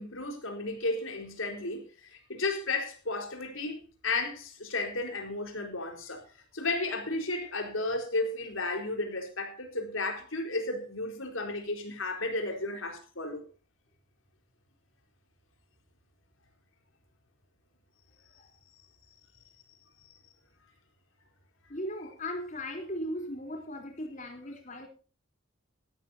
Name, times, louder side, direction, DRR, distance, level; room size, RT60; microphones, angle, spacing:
voice 1, 0.0-6.2 6.5-13.4, left 2 dB, 75° left, 4.4 m, -33 dB
voice 2, 21.7-24.9, equal, 35° left, 3.9 m, -37 dB
17.0 x 13.5 x 2.8 m
head